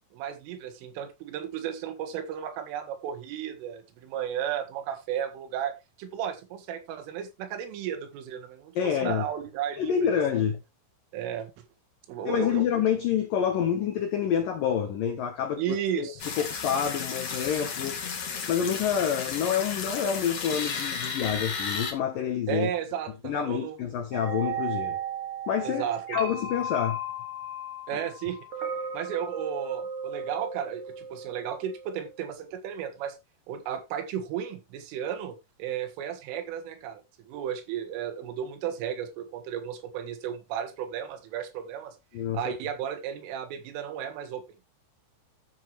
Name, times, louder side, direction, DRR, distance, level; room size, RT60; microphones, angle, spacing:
voice 1, 0.1-9.9 11.1-11.5 12.1-12.6 15.6-16.3 22.5-23.8 25.6-26.2 27.9-28.4 28.9-33.2 33.5-42.0 42.3-44.4, right 9 dB, 75° right, 4.0 m, -34 dB
voice 2, 8.8-9.2 9.8-10.6 12.2-18.0 18.5-22.7 23.2-25.0 25.5-27.0 27.9-28.0 42.1-42.5, left 8 dB, 85° left, 1.9 m, -28 dB
sound 1, 16.2-21.9, left 5 dB, 50° left, 2.1 m, -33 dB
sound 2, 24.1-32.1, right 3 dB, 50° right, 2.5 m, -35 dB
13.0 x 7.7 x 3.2 m
omnidirectional pair, 5.9 m